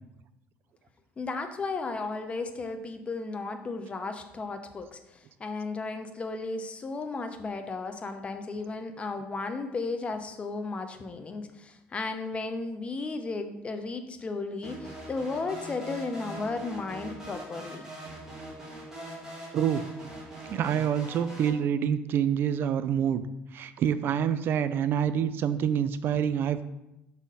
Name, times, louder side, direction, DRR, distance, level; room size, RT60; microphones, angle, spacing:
voice 1, 1.2-17.9, left 3 dB, 25° left, 8 dB, 0.7 m, -34 dB
sound 1, 14.6-21.5, right 1 dB, 10° right, 2.0 m, -42 dB
voice 2, 19.5-19.9 20.5-23.2 23.5-26.6, right 9 dB, 55° right, 13 dB, 0.4 m, -27 dB
6.0 x 4.2 x 5.4 m, 0.92 s
cardioid pair, 110°, 4 cm